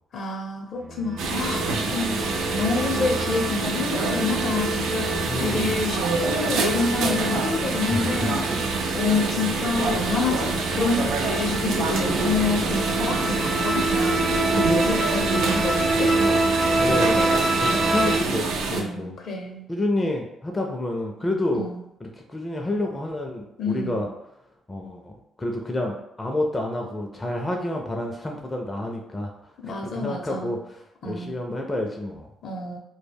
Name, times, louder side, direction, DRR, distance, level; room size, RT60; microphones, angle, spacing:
voice 1, 0.1-2.3 2.6-8.7 8.9-14.2 14.6-16.2 18.7-19.7 21.5-21.8 23.6-24.0 29.6-30.5 31.0-31.4 32.4-32.8, left 4 dB, 60° left, 1 dB, 0.6 m, -28 dB
sound 1, 0.8-18.2, right 2 dB, 50° right, 0.6 m, -27 dB
sound 2, 1.2-18.8, right 3 dB, 90° right, 0.4 m, -26 dB
voice 2, 5.3-5.9 7.9-8.6 9.4-9.5 16.7-19.1 19.7-21.7 22.0-24.1 24.7-29.3 29.9-30.6 31.0-32.3, left 1 dB, 15° left, 1 dB, 0.4 m, -29 dB
2.1 x 2.1 x 3.3 m, 0.83 s
cardioid pair, 90°, 0 cm